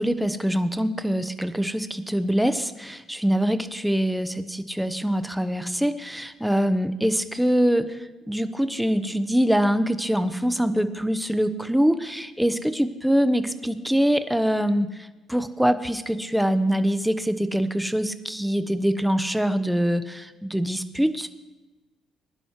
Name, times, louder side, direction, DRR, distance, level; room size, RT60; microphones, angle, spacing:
voice 1, 0.0-8.0 8.3-21.3, equal, 5° right, 11 dB, 1.0 m, -24 dB
20.0 x 11.0 x 3.1 m, 1.1 s
supercardioid pair, 60°, 0 cm